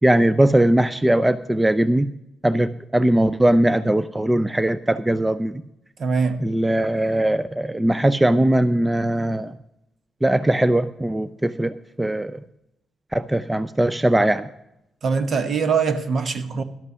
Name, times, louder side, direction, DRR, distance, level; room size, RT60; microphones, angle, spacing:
voice 1, 0.0-2.1 2.4-5.6 6.4-9.5 10.2-12.4 13.1-14.5, right 1 dB, 10° right, 0.4 m, -20 dB
voice 2, 6.0-6.4 15.0-16.6, right 5 dB, 50° right, 1.1 m, -22 dB
12.0 x 8.3 x 6.1 m
cardioid pair, 90°, 0 cm